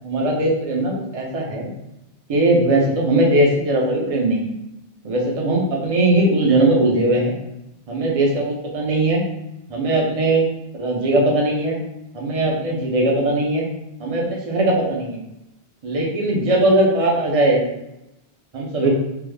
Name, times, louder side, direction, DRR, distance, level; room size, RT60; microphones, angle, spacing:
voice 1, 0.0-1.7 2.3-4.5 5.0-7.4 7.9-9.2 9.7-10.5 10.7-11.8 12.1-13.7 14.0-15.2 15.8-17.6 18.5-18.9, right 1 dB, 40° right, -2 dB, 0.6 m, -19 dB
3.4 x 2.0 x 3.3 m, 0.89 s
omnidirectional pair, 1.1 m